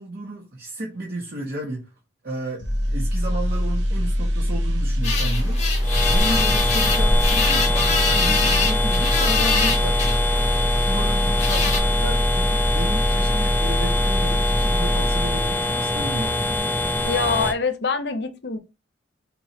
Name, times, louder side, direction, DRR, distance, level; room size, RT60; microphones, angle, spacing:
voice 1, 0.0-1.9 2.2-5.6 6.1-10.2 10.8-16.5, right 1 dB, 50° right, 0.9 m, -32 dB
sound 1, 2.6-15.7 16.0-16.3, equal, 85° right, 1.2 m, -23 dB
sound 2, 5.0-11.8, left 5 dB, 35° left, 1.0 m, -26 dB
sound 3, 5.8-17.5, left 2 dB, 10° left, 0.5 m, -24 dB
voice 2, 17.0-18.6, left 4 dB, 60° left, 0.7 m, -25 dB
4.3 x 3.1 x 2.8 m
head